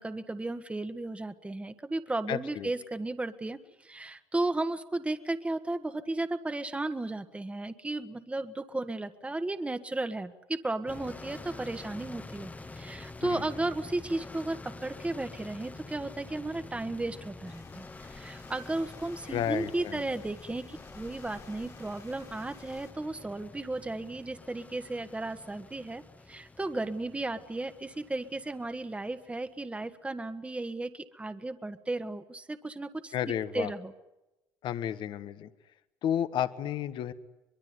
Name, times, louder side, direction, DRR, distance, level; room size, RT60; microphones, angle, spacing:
voice 1, 0.0-26.0 26.3-33.9, right 2 dB, 15° right, 9 dB, 1.6 m, -34 dB
voice 2, 2.3-2.7 13.2-13.4 19.3-20.0 33.1-33.7 34.6-35.5 36.0-37.1, left 10 dB, 65° left, 11 dB, 1.6 m, -32 dB
sound 1, 10.9-29.5, left 3 dB, 15° left, 1.4 m, -47 dB
sound 2, 17.4-22.9, left 5 dB, 40° left, 2.7 m, -53 dB
24.0 x 22.5 x 9.7 m, 0.97 s
supercardioid pair, 80°, 9 cm